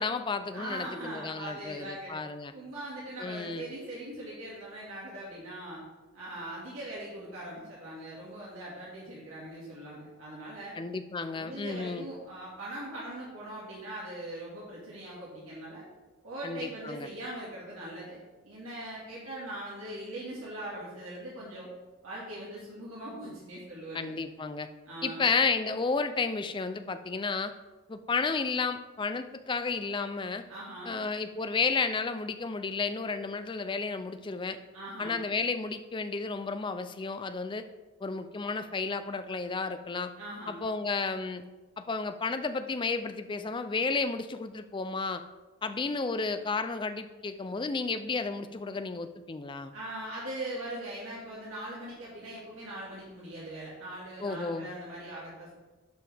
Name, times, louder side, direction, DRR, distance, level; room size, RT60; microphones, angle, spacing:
voice 1, 0.0-2.5 3.2-3.7 10.8-12.0 16.4-17.1 23.9-24.7 25.0-27.5 27.9-30.4 30.9-34.6 35.0-37.6 38.0-40.1 40.5-41.4 41.8-45.2 45.6-49.7 54.2-54.7, left 4 dB, 20° left, 10 dB, 0.3 m, -32 dB
voice 2, 0.5-2.1 2.5-5.8 6.1-10.8 11.4-15.9 16.2-18.2 18.5-21.7 22.0-24.1 24.9-25.2 30.5-31.0 34.7-35.2 40.2-40.6 49.7-55.6, right 1 dB, 75° right, -7 dB, 2.1 m, -41 dB
11.5 x 4.8 x 3.4 m, 1.2 s
head